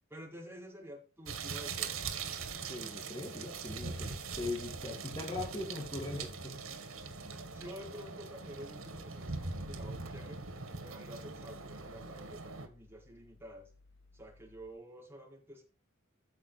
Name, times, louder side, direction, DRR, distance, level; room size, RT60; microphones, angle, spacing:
voice 1, 0.1-1.9 7.1-10.4 10.8-13.7 14.1-15.6, equal, 10° right, -4 dB, 4.9 m, -50 dB
sound 1, 1.3-12.7, right 4 dB, 85° right, 2.1 m, -42 dB
voice 2, 2.7-6.6, left 2 dB, 20° left, 0 dB, 2.1 m, -40 dB
sound 2, 4.6-14.7, left 3 dB, 60° left, 1.4 m, -63 dB
14.5 x 5.8 x 4.9 m, 0.35 s
head